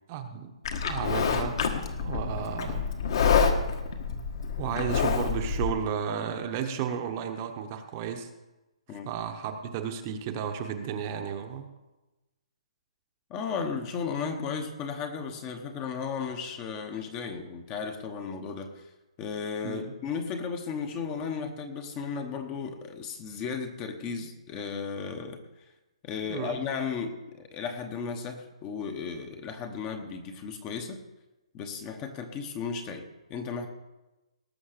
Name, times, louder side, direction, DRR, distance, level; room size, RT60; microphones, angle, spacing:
voice 1, 0.1-0.5 0.9-1.6 2.0-2.9 4.6-8.3 9.0-11.7 19.6-19.9 26.3-26.6, right 8 dB, 25° right, 6 dB, 1.0 m, -33 dB
Livestock farm animals working animals, 0.6-5.7, left 6 dB, 45° left, 1.4 m, -27 dB
voice 2, 13.3-18.9 19.2-25.7 26.0-31.0 31.5-33.7, left 6 dB, 15° left, 6 dB, 0.9 m, -35 dB
18.5 x 6.5 x 6.7 m, 1.0 s
hypercardioid pair, 170°, 4 cm